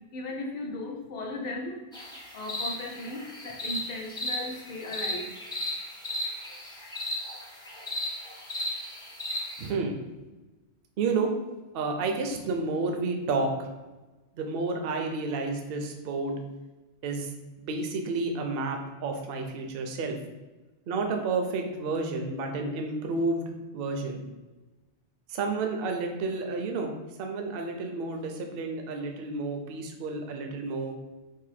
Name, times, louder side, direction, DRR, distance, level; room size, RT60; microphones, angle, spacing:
voice 1, 0.1-1.8 2.3-5.3, left 2 dB, 45° left, 0 dB, 0.6 m, -36 dB
sound 1, 1.9-9.7, left 1 dB, 5° left, 0.5 m, -35 dB
voice 2, 9.6-10.0 11.0-11.3 11.7-13.5 14.3-16.4 17.0-17.3 17.6-20.2 20.9-24.2 25.3-26.9 27.2-30.9, right 3 dB, 65° right, 3 dB, 0.7 m, -30 dB
2.7 x 2.6 x 4.0 m, 1.2 s
omnidirectional pair, 1.2 m